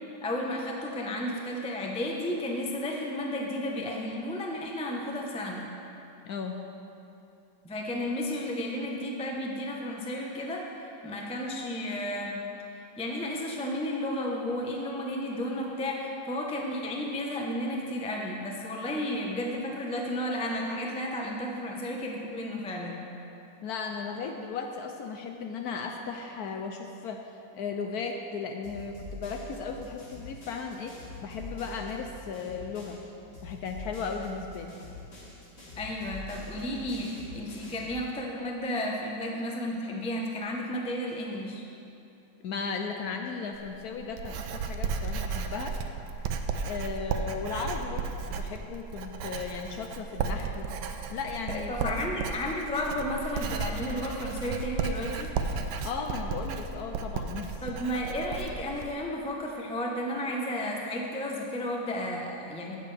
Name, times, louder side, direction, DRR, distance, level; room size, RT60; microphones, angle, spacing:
voice 1, 0.2-5.6 7.6-12.4 12.7-23.0 35.8-41.6 51.5-55.3 57.6-62.7, left 1 dB, 10° left, -1 dB, 0.3 m, -33 dB
voice 2, 6.3-6.6 23.6-30.9 31.2-33.0 33.4-34.7 42.4-45.8 46.6-50.7 51.1-52.3 55.8-57.5, left 5 dB, 70° left, 4 dB, 1.0 m, -36 dB
sound 1, 28.6-33.1 33.3-38.0, left 1 dB, 35° left, 2.1 m, -45 dB
Writing, 43.5-58.9, right 5 dB, 75° right, 1.2 m, -34 dB
16.5 x 6.8 x 3.4 m, 2.8 s
omnidirectional pair, 2.0 m